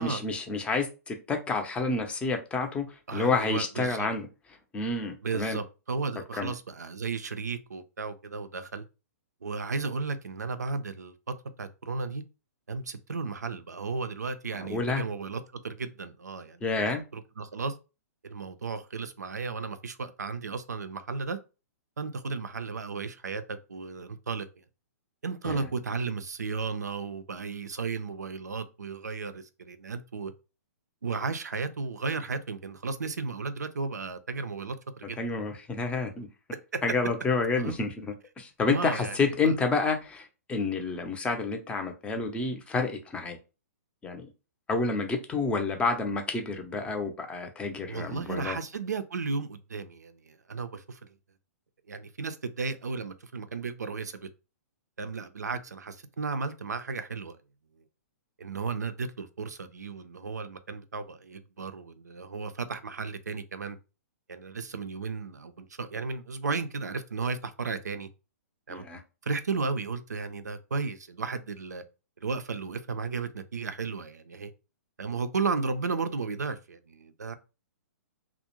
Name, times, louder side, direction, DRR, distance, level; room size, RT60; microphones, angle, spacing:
voice 1, 0.0-4.3 4.7-5.6 6.4-6.5 14.6-15.0 16.6-17.0 25.4-25.7 35.2-36.3 36.8-43.4 44.0-44.3 44.7-48.6 68.7-69.0, left 3 dB, 15° left, 0.5 m, -29 dB
voice 2, 3.1-4.1 5.2-8.8 9.4-12.2 12.7-17.7 18.2-21.4 22.0-23.4 23.7-24.5 25.2-30.3 31.0-35.2 36.7-36.8 37.6-37.8 38.6-39.2 39.4-39.5 47.9-51.0 51.9-54.3 55.0-57.4 58.4-63.8 64.3-68.1 68.7-68.8 69.2-71.8 72.2-74.5 75.0-77.3, right 4 dB, 90° right, 0.4 m, -34 dB
2.4 x 2.0 x 2.9 m
hypercardioid pair, 125°, 9 cm